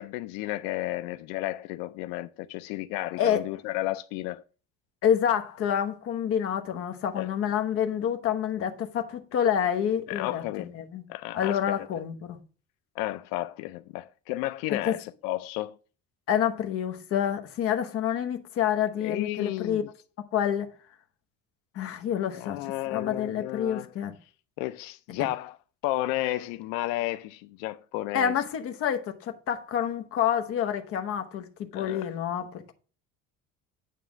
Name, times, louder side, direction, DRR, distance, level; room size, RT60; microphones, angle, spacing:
voice 1, 0.0-4.4 7.2-7.3 10.1-10.7 11.1-11.9 13.0-15.7 19.0-19.8 22.4-23.9 24.6-25.5 25.8-28.3 31.7-32.1, left 16 dB, 90° left, 0.5 m, -32 dB
voice 2, 5.0-11.0 11.3-12.4 14.7-15.0 16.3-19.8 20.3-20.7 21.7-24.1 25.2-25.3 28.1-32.7, left 9 dB, 45° left, 1.0 m, -28 dB
9.3 x 3.3 x 6.0 m
cardioid pair, 160°, 32 cm